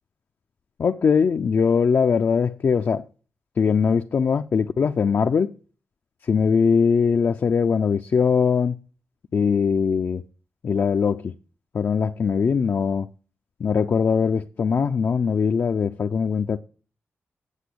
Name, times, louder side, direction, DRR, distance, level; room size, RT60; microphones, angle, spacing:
voice 1, 0.8-3.0 3.6-5.5 6.2-8.8 9.3-10.2 10.6-11.3 11.7-13.1 13.6-16.6, left 6 dB, 55° left, 0.5 m, -21 dB
8.1 x 7.5 x 8.4 m
wide cardioid pair, 115°, 5 cm